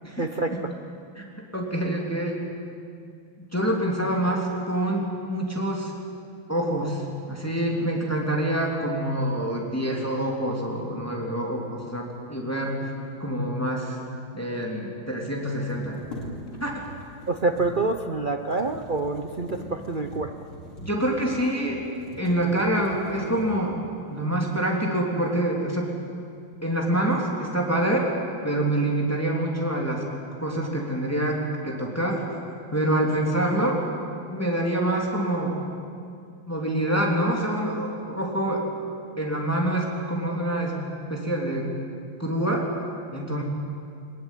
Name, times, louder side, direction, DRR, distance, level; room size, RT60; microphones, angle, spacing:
voice 1, 0.2-0.6 17.3-20.3, right 3 dB, 75° right, 5 dB, 0.4 m, -27 dB
voice 2, 1.5-2.4 3.5-5.9 6.5-12.8 13.2-14.0 14.3-16.0 16.6-16.8 20.8-23.8 24.1-25.9 26.6-28.1 28.4-30.0 30.4-32.2 32.7-33.8 34.3-35.6 36.5-38.6 39.2-40.7 41.1-41.7 42.2-42.7 43.1-43.4, right 1 dB, 5° left, -1 dB, 3.2 m, -26 dB
sound 1, 14.0-14.1 14.2-14.3 15.4-23.8 24.5-24.6 25.0-25.7 26.0-26.6, equal, 90° left, 4.4 m, -43 dB
21.5 x 21.0 x 9.2 m, 2.4 s
omnidirectional pair, 2.3 m